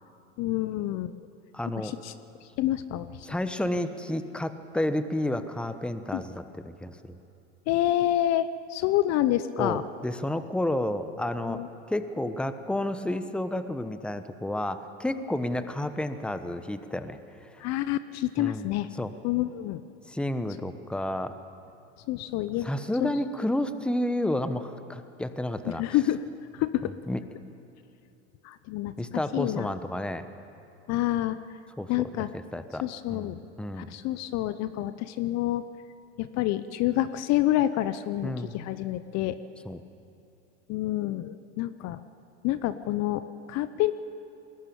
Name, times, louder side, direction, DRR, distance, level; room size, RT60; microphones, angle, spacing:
voice 1, 0.4-1.1 1.8-2.1 2.6-3.3 6.1-6.2 7.7-9.8 11.5-11.7 17.6-18.9 19.2-19.8 22.1-22.7 23.0-23.1 25.6-26.2 26.5-26.9 28.4-29.7 30.9-31.4 31.9-32.3 32.8-33.4 33.7-35.6 36.2-39.4 40.7-42.0 42.4-43.9, left 14 dB, 45° left, 14 dB, 0.8 m, -28 dB
voice 2, 1.5-1.9 3.2-7.2 9.6-11.6 11.9-17.7 18.4-19.1 20.1-21.4 22.6-26.0 26.8-27.2 29.0-30.3 31.8-33.9 38.2-38.5 39.6-39.8, left 1 dB, 5° left, 11 dB, 1.1 m, -31 dB
21.0 x 18.0 x 8.7 m, 3.0 s
hypercardioid pair, 90°, 36 cm